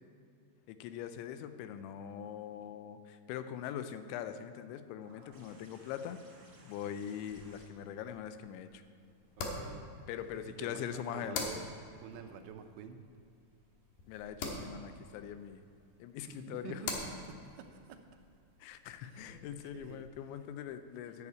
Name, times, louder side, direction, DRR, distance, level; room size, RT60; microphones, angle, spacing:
voice 1, 0.7-6.2 6.6-8.8 10.1-11.6 14.1-15.6 16.0-16.8 18.6-21.3, left 9 dB, 90° left, 10 dB, 3.0 m, -42 dB
sound 1, 5.0-10.3 11.7-11.8, right 2 dB, 60° right, 1.3 m, -62 dB
sound 2, 7.3-20.1, left 3 dB, 70° left, 2.6 m, -46 dB
voice 2, 9.4-9.9 10.3-11.6 12.0-13.0 16.2-18.0 19.1-19.3 19.7-20.0, right 6 dB, 85° right, 6 dB, 3.1 m, -48 dB
10.5 x 5.6 x 8.1 m, 2.5 s
omnidirectional pair, 5.2 m